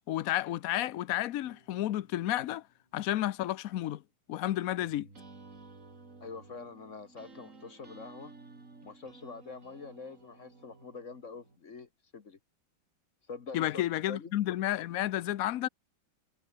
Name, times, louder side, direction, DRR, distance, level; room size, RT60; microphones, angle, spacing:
voice 1, 0.0-2.6 2.9-4.0 4.3-5.1 13.5-15.7, left 13 dB, 70° left, 0.8 m, -31 dB
Guitar, 1.4-4.6, left 1 dB, 20° left, 8.1 m, -68 dB
sound 1, 4.8-11.6, right 3 dB, 40° right, 3.6 m, -54 dB
voice 2, 6.2-8.3 8.8-12.4 13.3-13.7 14.1-14.3, left 4 dB, 40° left, 1.5 m, -45 dB
omnidirectional pair, 2.2 m